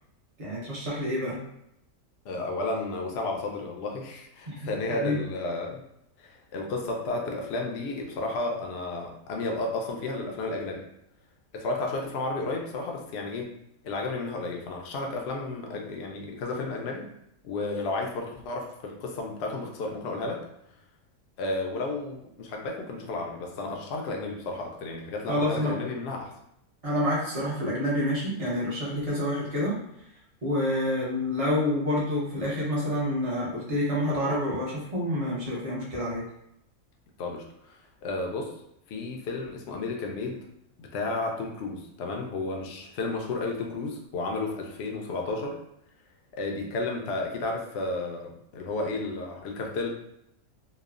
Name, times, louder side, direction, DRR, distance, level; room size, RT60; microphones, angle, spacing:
voice 1, 0.4-1.4 4.5-5.2 25.3-25.7 26.8-29.8 30.4-36.3, left 1 dB, 35° right, -6 dB, 0.6 m, -28 dB
voice 2, 2.2-5.8 6.2-10.8 11.5-13.5 13.8-17.1 17.4-20.4 21.4-26.3 37.2-38.5 38.9-40.4 40.8-45.6 46.3-49.9, left 2 dB, 65° left, 1 dB, 0.6 m, -32 dB
3.1 x 2.1 x 2.4 m, 0.77 s
omnidirectional pair, 1.5 m